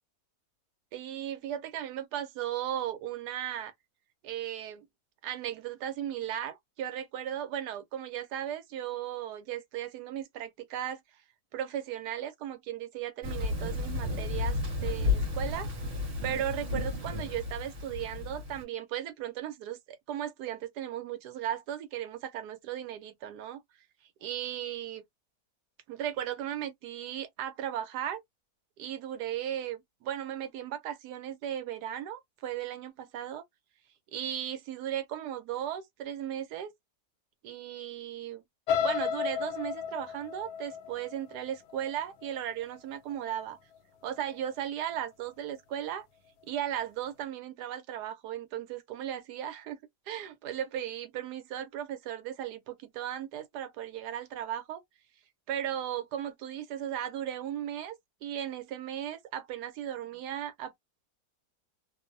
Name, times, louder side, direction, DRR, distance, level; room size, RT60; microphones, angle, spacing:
voice 1, 0.9-3.7 4.2-4.9 5.2-11.0 11.5-15.7 16.2-23.6 24.2-25.0 25.9-28.2 28.8-33.4 34.1-36.7 37.4-38.4 38.8-43.6 44.0-46.1 46.5-49.8 50.1-54.8 55.5-58.0 58.2-60.8, right 10 dB, 80° right, 1.2 m, -36 dB
Thunder, 13.2-18.6, left 3 dB, 40° right, 1.2 m, -32 dB
sound 1, 38.7-42.6 43.1-43.4 43.8-43.9, left 8 dB, 80° left, 1.1 m, -33 dB
2.9 x 2.0 x 2.5 m
omnidirectional pair, 1.7 m